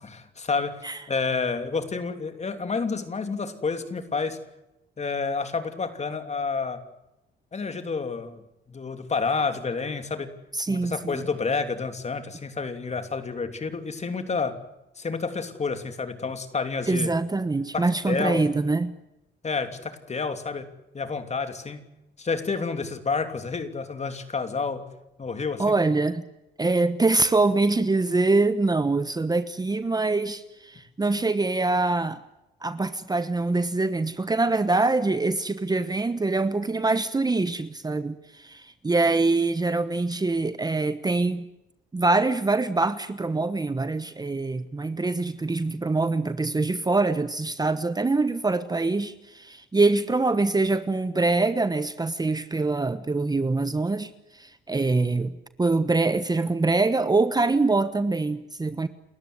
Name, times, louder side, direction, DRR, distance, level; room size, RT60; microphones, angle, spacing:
voice 1, 0.0-4.4 5.0-6.8 7.5-8.4 8.7-10.3 10.7-14.6 15.0-17.1 17.7-18.5 19.4-20.7 20.9-21.9 22.2-24.9 25.2-25.7, left 4 dB, 35° left, 3.1 m, -29 dB
voice 2, 10.5-11.2 16.9-18.9 25.6-26.2 26.6-32.2 32.6-41.5 41.9-58.9, right 3 dB, 20° right, 1.2 m, -24 dB
29.5 x 14.0 x 9.7 m
cardioid pair, 90°, 20 cm